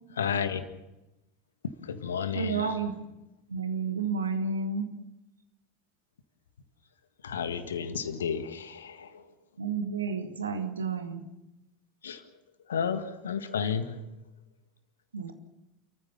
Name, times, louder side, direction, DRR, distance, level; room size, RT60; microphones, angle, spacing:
voice 1, 0.2-0.6 1.6-2.8 7.2-9.2 12.0-12.2 12.7-14.1, left 7 dB, 70° left, 11 dB, 1.7 m, -32 dB
voice 2, 2.3-2.9 3.5-4.9 9.6-11.2 15.1-15.3, right 5 dB, 80° right, 8 dB, 2.2 m, -31 dB
29.5 x 14.5 x 7.2 m, 0.95 s
figure-of-eight pair, 75°, 0 cm